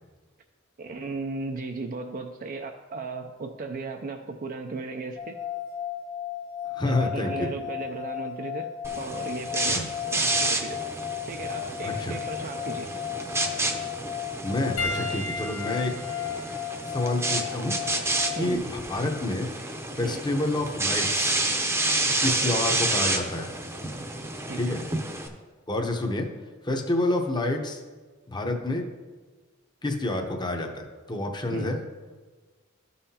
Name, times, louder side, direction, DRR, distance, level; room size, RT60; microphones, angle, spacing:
voice 1, 0.8-5.4 6.8-8.7 9.0-10.8 11.3-12.9 18.4-18.6 20.0-20.2 22.1-22.5 24.4-24.8 31.5-31.7, right 3 dB, 45° right, 4 dB, 0.4 m, -36 dB
sound 1, 5.2-18.6, left 10 dB, 50° left, 1.2 m, -35 dB
voice 2, 6.7-7.5 9.7-9.9 11.8-12.2 14.4-15.9 16.9-19.5 20.0-21.4 22.2-23.5 24.5-24.8 25.7-26.3 26.6-27.8 28.3-28.9 29.8-31.8, left 2 dB, 20° left, 4 dB, 0.8 m, -28 dB
sound 2, 8.8-25.3, right 2 dB, 15° right, 0.7 m, -30 dB
Piano, 14.8-19.4 20.4-20.6 22.5-22.6, left 3 dB, 85° left, 0.9 m, -37 dB
13.0 x 5.6 x 2.8 m, 1.4 s
head